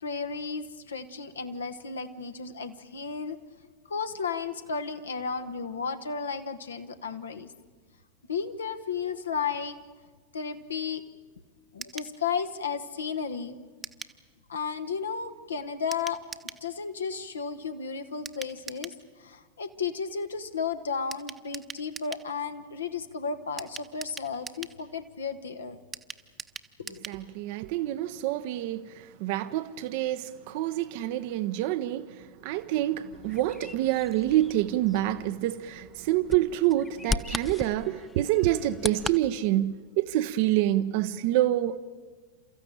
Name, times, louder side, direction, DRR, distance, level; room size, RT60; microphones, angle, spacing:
voice 1, 0.0-3.4 3.9-7.5 8.3-9.8 10.3-11.0 11.7-13.6 14.5-25.8 26.8-27.1, left 5 dB, 70° left, 1.3 m, -33 dB
sound 1, 11.8-12.1 13.8-14.2 15.9-16.6 18.2-19.0 21.1-22.3 23.6-24.8 25.9-27.2 27.5-27.6 27.9-28.0, right 5 dB, 15° right, 1.0 m, -42 dB
voice 2, 27.1-41.8, right 14 dB, 50° right, 0.7 m, -27 dB
Bird vocalization bird call bird song, 33.1-39.2, left 4 dB, 10° left, 0.6 m, -38 dB
29.5 x 14.5 x 8.8 m
figure-of-eight pair, 90°, 0 cm